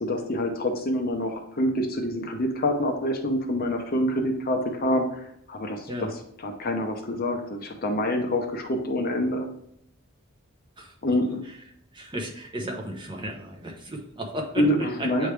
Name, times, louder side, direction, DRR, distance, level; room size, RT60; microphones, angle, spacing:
voice 1, 0.0-5.2 5.5-6.1 6.4-9.5 11.0-11.4 14.6-15.3, left 1 dB, 45° left, 4 dB, 0.8 m, -26 dB
voice 2, 11.9-14.5 15.0-15.3, equal, 25° right, 0 dB, 1.0 m, -34 dB
8.8 x 3.3 x 3.3 m, 0.71 s
head